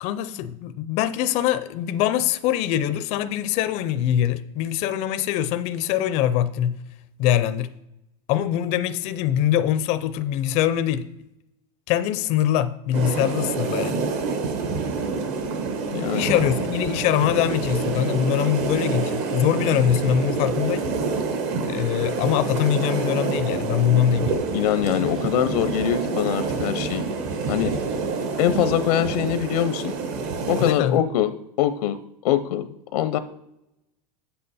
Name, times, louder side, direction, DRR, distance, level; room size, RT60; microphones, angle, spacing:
voice 1, 0.0-6.8 7.2-7.7 8.3-11.1 11.9-14.0 16.1-20.9 21.6-24.4 30.6-31.0, left 11 dB, 35° left, 12 dB, 0.4 m, -23 dB
sound 1, 12.9-30.7, right 4 dB, 45° right, 1.0 m, -27 dB
voice 2, 15.9-16.3 24.5-27.1 27.5-27.7 28.4-29.9 30.5-31.3 31.6-33.2, left 11 dB, 80° left, 12 dB, 0.6 m, -23 dB
8.1 x 7.7 x 4.1 m, 0.85 s
supercardioid pair, 165°, 20 cm